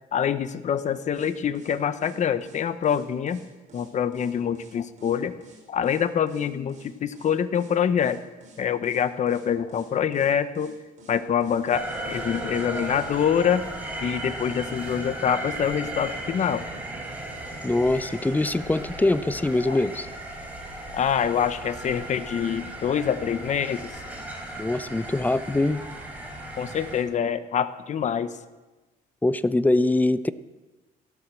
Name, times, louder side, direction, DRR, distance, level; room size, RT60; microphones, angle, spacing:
voice 1, 0.1-3.4 3.7-5.3 5.7-8.2 8.6-10.7 11.1-13.6 14.0-16.6 19.7-19.8 20.9-23.9 26.6-28.4, left 8 dB, 45° left, 12 dB, 1.0 m, -25 dB
sound 1, 1.1-15.0, right 2 dB, 45° right, 5.3 m, -52 dB
sound 2, 11.7-27.0, right 1 dB, 10° right, 4.7 m, -36 dB
voice 2, 17.6-20.1 24.6-25.8 29.2-30.3, left 2 dB, 10° left, 15 dB, 0.6 m, -23 dB
16.0 x 13.0 x 6.3 m, 1.2 s
cardioid pair, 110°, 17 cm